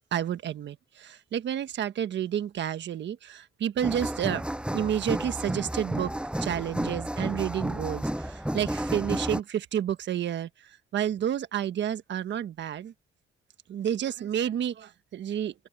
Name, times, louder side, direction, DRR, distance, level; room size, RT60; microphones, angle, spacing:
voice 1, 0.0-4.4 4.7-6.1 6.4-10.5 10.9-12.9 13.7-15.5, right 10 dB, 65° right, 1.4 m, -30 dB
sound 1, 3.8-9.4, right 1 dB, 5° right, 7.4 m, -32 dB
open air
cardioid pair, 90°, 20 cm